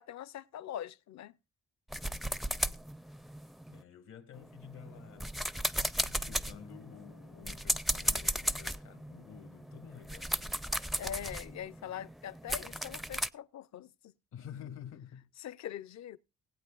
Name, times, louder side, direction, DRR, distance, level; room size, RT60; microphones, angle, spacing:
voice 1, 0.0-1.4 11.0-14.1 15.4-16.2, left 10 dB, 65° left, 0.7 m, -43 dB
sound 1, 1.9-3.8 4.3-13.3, equal, ahead, 0.4 m, -36 dB
voice 2, 3.7-5.3 5.9-10.6 14.3-15.3, left 9 dB, 80° left, 1.9 m, -50 dB
19.5 x 8.4 x 2.4 m
cardioid pair, 90°, 30 cm